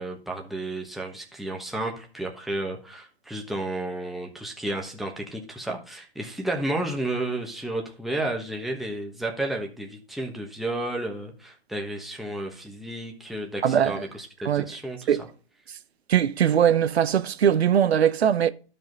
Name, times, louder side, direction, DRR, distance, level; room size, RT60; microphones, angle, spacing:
voice 1, 0.0-15.2, right 1 dB, ahead, 1.2 m, -32 dB
voice 2, 13.6-14.0 14.4-14.7 15.1-15.2 16.1-18.5, right 9 dB, 75° right, 0.8 m, -21 dB
12.0 x 5.5 x 3.9 m
hypercardioid pair, 135°, 32 cm